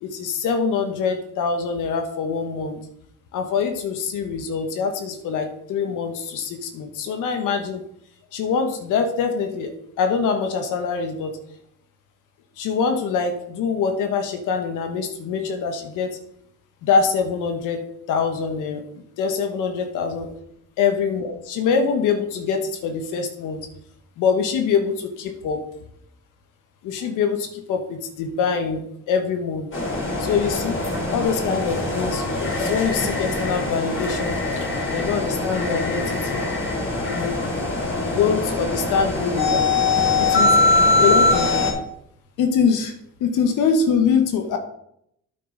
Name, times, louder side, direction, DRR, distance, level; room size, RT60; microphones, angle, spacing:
voice 1, 0.0-2.8 3.3-7.8 8.3-9.7 10.0-11.3 12.6-16.2 16.8-17.8 18.1-18.8 19.2-20.3 20.8-23.6 24.2-25.6 26.8-29.7 30.2-30.7 31.1-36.5 37.1-37.4 38.0-39.6 40.2-40.6 41.0-41.5 42.4-42.9 43.2-44.6, left 6 dB, 90° left, 6 dB, 1.3 m, -24 dB
sound 1, 29.7-41.7, left 2 dB, 40° left, 3.6 m, -22 dB
9.3 x 7.9 x 3.9 m, 0.74 s
cardioid pair, 90°, 30 cm